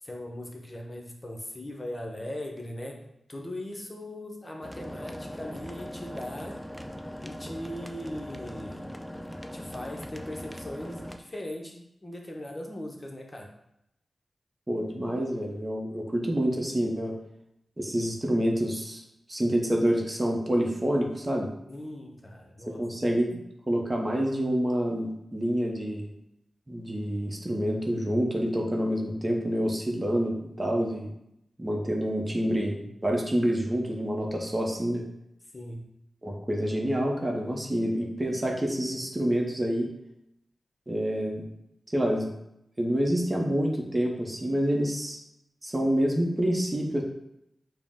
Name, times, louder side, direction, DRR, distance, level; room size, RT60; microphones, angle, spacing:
voice 1, 0.0-6.6 7.2-9.0 9.5-13.5 21.7-22.8 35.5-35.9, left 1 dB, 30° left, 0 dB, 0.8 m, -39 dB
sound 1, 4.6-11.2, equal, ahead, 0.4 m, -40 dB
voice 2, 14.7-17.1 17.8-19.0 19.3-21.5 22.8-23.4 23.7-26.1 26.7-31.1 31.6-35.0 36.2-39.9 40.9-41.4 41.9-42.3 42.8-45.2 45.6-47.0, equal, 25° right, 1 dB, 0.8 m, -27 dB
4.9 x 2.1 x 3.6 m, 0.80 s
cardioid pair, 45°, 0 cm